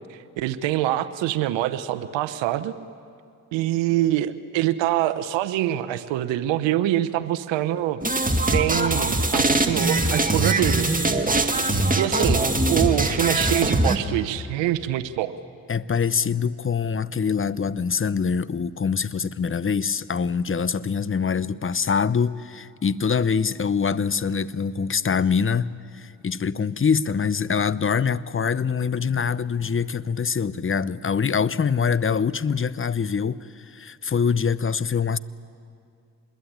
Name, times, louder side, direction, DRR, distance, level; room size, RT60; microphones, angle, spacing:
voice 1, 0.1-2.7 3.5-8.0 8.5-10.9 12.0-15.3, right 13 dB, 80° right, 0.9 m, -25 dB
sound 1, 8.0-14.0, right 2 dB, 20° right, 2.2 m, -22 dB
voice 2, 15.7-35.2, left 6 dB, 30° left, 0.8 m, -24 dB
26.0 x 21.5 x 8.8 m
hypercardioid pair, 40°, 44 cm